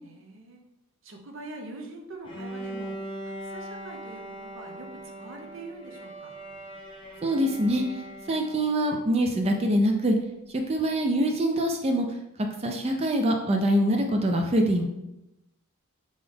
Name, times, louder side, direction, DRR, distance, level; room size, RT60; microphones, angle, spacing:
voice 1, 0.0-0.6 1.0-3.0 3.3-6.3, right 2 dB, 60° right, 2 dB, 0.7 m, -43 dB
Bowed string instrument, 2.2-9.0, right 1 dB, 20° left, 1.0 m, -40 dB
voice 2, 7.2-7.8 8.3-10.2 10.7-12.1 12.6-14.8, right 1 dB, 30° right, 4 dB, 0.4 m, -24 dB
3.9 x 3.8 x 3.4 m, 0.92 s
head